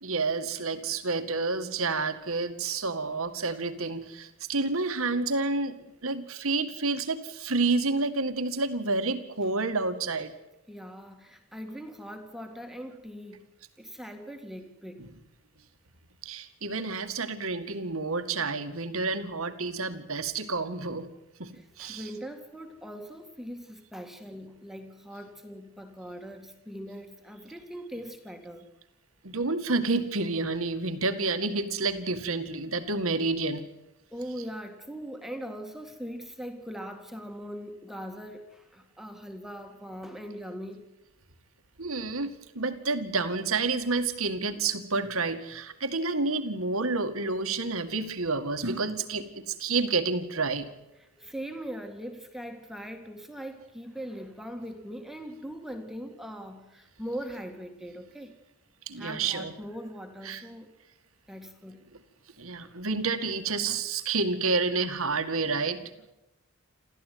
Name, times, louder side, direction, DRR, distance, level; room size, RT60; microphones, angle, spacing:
voice 1, 0.0-5.8 6.0-10.3 16.2-21.1 21.4-21.5 21.8-22.0 29.2-33.7 41.8-50.7 58.9-59.5 60.2-60.4 62.4-65.8, right 3 dB, 70° right, 9 dB, 2.0 m, -29 dB
voice 2, 10.7-13.5 13.8-15.1 21.5-28.7 34.1-40.9 51.0-58.3 59.0-60.7 61.3-61.8, equal, ahead, 4 dB, 2.0 m, -41 dB
28.5 x 14.5 x 9.4 m, 0.94 s
head